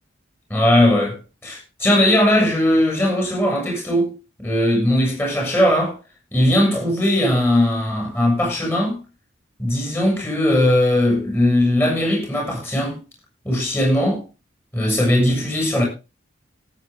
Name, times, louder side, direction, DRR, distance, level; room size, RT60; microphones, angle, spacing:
voice 1, 0.5-1.2 1.4-5.9 6.3-9.0 9.6-13.0 13.5-14.2 14.7-15.8, left 1 dB, 10° left, 7.0 m, -19 dB
17.5 x 9.0 x 3.7 m
head